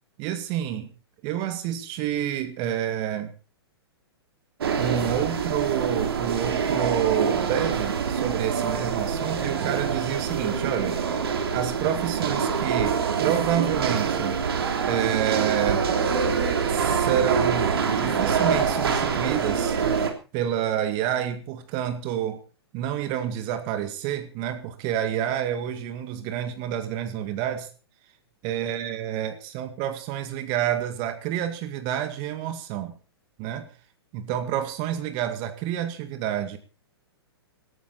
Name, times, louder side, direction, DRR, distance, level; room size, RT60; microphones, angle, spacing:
voice 1, 0.2-0.9 1.2-3.3 4.8-11.0 11.5-14.4 14.9-15.9 16.7-19.8 20.3-22.4 22.7-27.7 28.4-32.9 33.4-33.7 34.1-36.6, right 10 dB, 35° right, 9 dB, 2.0 m, -28 dB
sound 1, 4.6-20.1, right 6 dB, 65° right, 3.4 m, -25 dB
18.5 x 14.0 x 4.3 m, 0.35 s
figure-of-eight pair, 115°, 14 cm